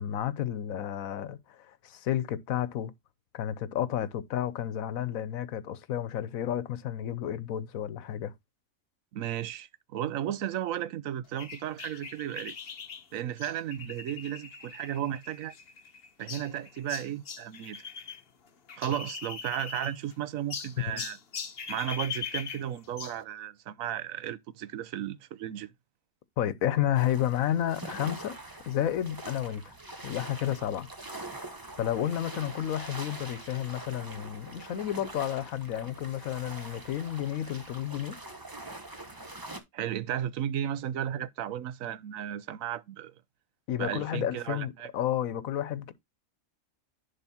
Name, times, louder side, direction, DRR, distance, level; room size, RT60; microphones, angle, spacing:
voice 1, 0.0-2.9 3.3-8.3 20.9-21.0 26.4-28.3 28.7-29.7 30.0-30.9 31.8-38.2 43.7-45.9, left 11 dB, 85° left, 1.2 m, -31 dB
voice 2, 9.1-12.5 13.1-15.5 16.2-17.8 18.8-21.2 21.7-25.7 39.7-43.1 43.8-44.9, right 11 dB, 80° right, 1.1 m, -34 dB
sound 1, 11.4-18.2 18.5-20.1 20.5-23.2, left 6 dB, 50° left, 1.1 m, -41 dB
sound 2, 26.9-39.6, right 2 dB, 15° right, 1.0 m, -44 dB
10.5 x 3.7 x 4.2 m
omnidirectional pair, 1.4 m